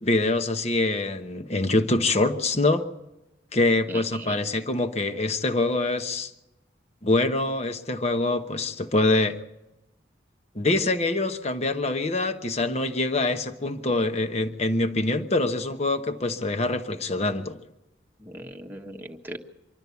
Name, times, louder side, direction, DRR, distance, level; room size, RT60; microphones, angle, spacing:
voice 1, 0.0-2.9 3.5-6.3 7.0-9.4 10.5-17.6, left 2 dB, 35° left, 8 dB, 1.0 m, -25 dB
voice 2, 3.9-4.4 18.2-19.4, right 1 dB, 10° right, 2 dB, 1.3 m, -38 dB
25.0 x 12.5 x 8.3 m, 0.98 s
head